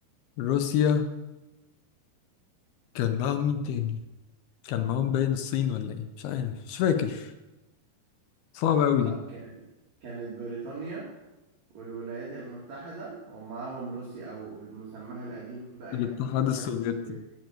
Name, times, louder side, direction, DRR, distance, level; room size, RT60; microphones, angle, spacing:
voice 1, 0.4-1.1 3.0-4.0 4.6-7.3 8.5-9.2 15.9-17.2, left 9 dB, 75° left, 7 dB, 2.6 m, -27 dB
voice 2, 8.9-9.5 10.0-11.1 11.7-16.7 17.0-17.2, right 3 dB, 50° right, -6 dB, 3.0 m, -40 dB
11.5 x 5.8 x 9.0 m, 1.0 s
omnidirectional pair, 4.8 m